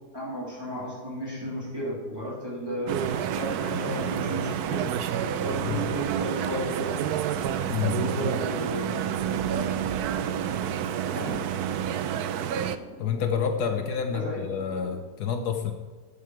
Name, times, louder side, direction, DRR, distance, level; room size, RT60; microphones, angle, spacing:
voice 1, 0.1-5.0 5.4-7.0 8.0-10.1 11.1-11.6 14.1-14.4, equal, 15° right, -7 dB, 3.0 m, -34 dB
sound 1, 2.9-12.8, right 9 dB, 70° right, 1.1 m, -29 dB
voice 2, 5.5-5.8 7.7-8.0 13.0-15.7, left 7 dB, 70° left, 5 dB, 1.4 m, -28 dB
sound 2, 7.9-15.0, right 2 dB, 45° right, 2.8 m, -46 dB
11.5 x 7.8 x 4.7 m, 1.4 s
omnidirectional pair, 1.8 m